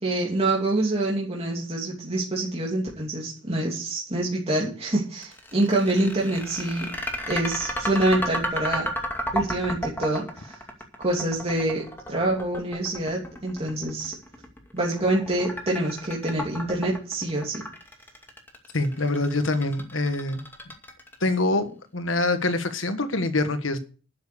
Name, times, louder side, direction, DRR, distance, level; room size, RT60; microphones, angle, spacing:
voice 1, 0.0-6.9 7.3-8.9 9.3-10.6 11.0-14.2 14.7-17.6, right 2 dB, 30° right, 2.9 m, -26 dB
sound 1, 5.2-21.3, equal, 10° left, 2.4 m, -32 dB
voice 2, 18.7-20.4 21.2-23.8, left 2 dB, 80° left, 1.5 m, -25 dB
12.0 x 7.7 x 6.8 m
head